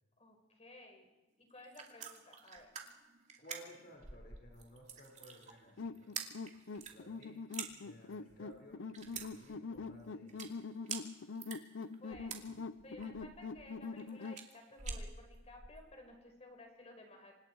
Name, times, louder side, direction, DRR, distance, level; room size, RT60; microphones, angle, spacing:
voice 1, 0.2-1.1 1.4-2.7 12.0-12.6 12.8-17.4, left 1 dB, 35° left, 3 dB, 5.3 m, -56 dB
sound 1, 1.5-15.8, right 6 dB, 40° right, 2.6 m, -47 dB
voice 2, 3.4-6.1 6.8-7.4 7.8-10.5, equal, 55° left, -1 dB, 5.4 m, -57 dB
sound 2, 5.8-14.5, left 4 dB, 90° left, 0.7 m, -44 dB
30.0 x 26.0 x 4.7 m, 1.1 s
head